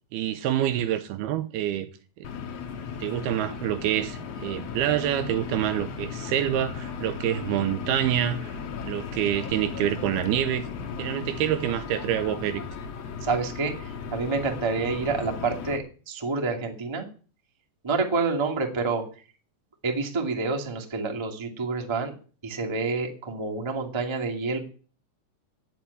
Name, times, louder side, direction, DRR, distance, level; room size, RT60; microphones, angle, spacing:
voice 1, 0.1-1.9 2.2-2.3 3.0-8.6 8.8-10.7 11.0-12.6, right 11 dB, 80° right, 2.6 m, -27 dB
sound 1, 2.2-15.8, left 6 dB, 60° left, 1.8 m, -36 dB
voice 2, 13.2-17.1 17.8-19.0 19.8-22.1 22.4-24.6, right 4 dB, 10° right, 1.2 m, -28 dB
11.0 x 7.8 x 9.7 m
omnidirectional pair, 4.8 m